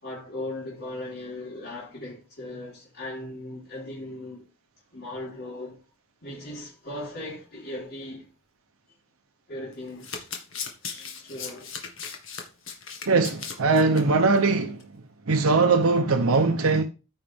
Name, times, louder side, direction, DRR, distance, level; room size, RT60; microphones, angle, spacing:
voice 1, 0.0-4.5 4.9-5.8 6.2-8.3 9.5-10.3 10.8-11.7, left 1 dB, 50° left, 3.9 m, -38 dB
Domestic sounds home sounds, 9.7-14.0 14.4-14.5 14.8-14.9, left 6 dB, 70° left, 1.9 m, -37 dB
voice 2, 13.1-14.8 15.3-16.8, right 3 dB, 90° right, 0.8 m, -21 dB
14.0 x 5.7 x 3.5 m
head